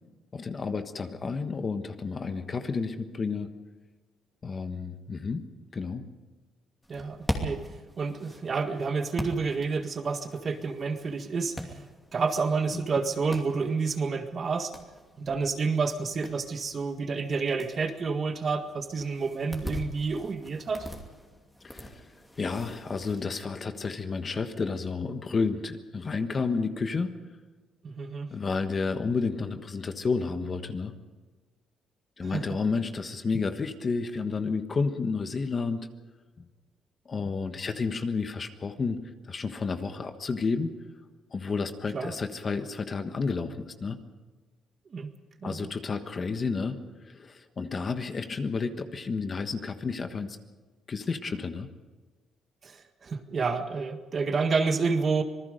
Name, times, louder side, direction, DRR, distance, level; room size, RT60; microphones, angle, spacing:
voice 1, 0.3-3.5 4.4-5.5 5.7-6.0 12.7-12.8 21.6-22.1 22.4-27.1 28.3-30.9 32.2-35.9 37.0-39.0 39.3-40.7 41.3-44.0 45.4-46.8 47.0-50.4 50.9-51.7, left 4 dB, 30° left, 8 dB, 1.3 m, -31 dB
sound 1, 6.8-23.2, equal, 10° left, 2.7 m, -42 dB
voice 2, 6.9-7.6 8.0-11.7 12.1-14.7 15.2-20.9 27.8-28.3 32.2-32.4 41.9-42.1 44.9-45.1 45.4-45.7 52.6-55.2, right 4 dB, 35° right, 7 dB, 1.8 m, -29 dB
26.0 x 20.0 x 5.2 m, 1.3 s
cardioid pair, 135°, 0 cm